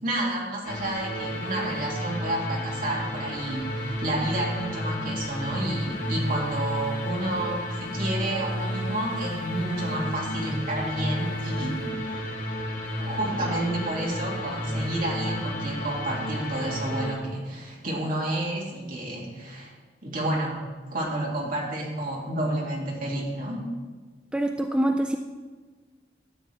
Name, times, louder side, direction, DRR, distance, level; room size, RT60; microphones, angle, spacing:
voice 1, 0.0-11.8 13.0-19.7 20.0-20.6 20.9-23.6, right 1 dB, 50° right, -4 dB, 2.4 m, -30 dB
sound 1, 0.6-17.1, left 1 dB, 45° left, 1.5 m, -32 dB
voice 2, 24.3-25.2, right 1 dB, 5° right, 4 dB, 0.3 m, -25 dB
13.0 x 8.0 x 3.4 m, 1.4 s
head